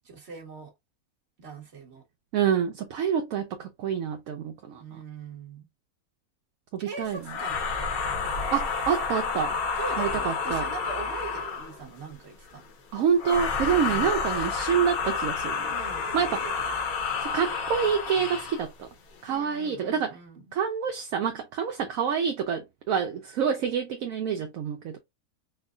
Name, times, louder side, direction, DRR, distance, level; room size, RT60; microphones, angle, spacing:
voice 1, 0.0-0.7 1.4-2.0 4.8-5.7 6.8-7.9 9.7-12.6 13.8-14.1 15.7-16.8 19.3-20.4, right 4 dB, 50° right, 1.6 m, -41 dB
voice 2, 2.3-5.0 6.7-7.3 8.5-9.6 10.0-10.7 12.9-15.7 16.1-16.4 17.2-18.9 19.2-20.2 20.5-25.0, right 7 dB, 75° right, 1.0 m, -27 dB
sound 1, 7.2-11.8 13.2-18.6, left 5 dB, 80° left, 1.3 m, -30 dB
4.5 x 2.1 x 2.4 m
omnidirectional pair, 1.5 m